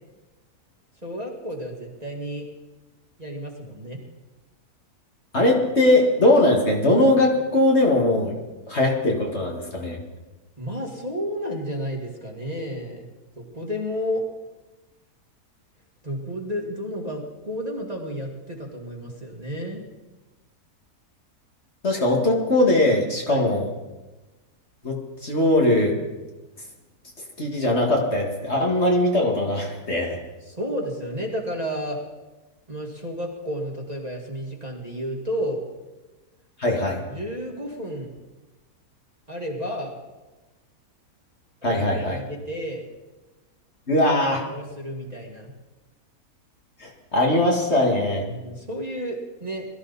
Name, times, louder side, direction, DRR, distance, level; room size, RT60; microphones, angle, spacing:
voice 1, 1.0-2.4 3.2-4.0 10.6-13.0 13.4-14.2 16.0-19.8 22.1-22.2 23.3-23.5 30.4-32.0 32.7-35.6 37.1-38.1 39.3-40.0 41.7-42.8 44.0-44.1 44.5-45.5 48.3-49.7, equal, 25° right, 0 dB, 2.1 m, -31 dB
voice 2, 5.3-8.3 8.7-10.0 21.8-23.7 24.8-25.9 27.4-30.2 36.6-37.0 41.6-42.2 43.9-44.5 46.8-48.2, left 1 dB, 40° left, -1 dB, 2.4 m, -20 dB
21.5 x 13.5 x 4.2 m, 1.1 s
omnidirectional pair, 1.7 m